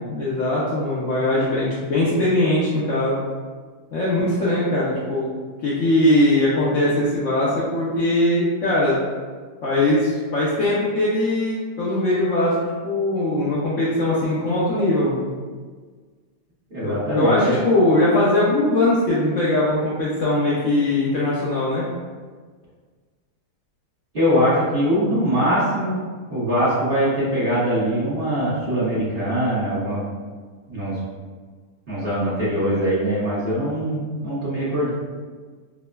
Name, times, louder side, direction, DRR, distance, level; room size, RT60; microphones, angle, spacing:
voice 1, 0.1-3.1 3.9-5.3 5.6-9.0 9.6-15.3 16.8-21.8, left 1 dB, 65° left, -8 dB, 0.8 m, -20 dB
voice 2, 16.7-17.6 24.1-26.0 26.3-30.0 30.7-31.0 31.9-34.9, equal, 40° right, -11 dB, 0.9 m, -22 dB
4.7 x 2.0 x 2.2 m, 1.5 s
omnidirectional pair, 1.8 m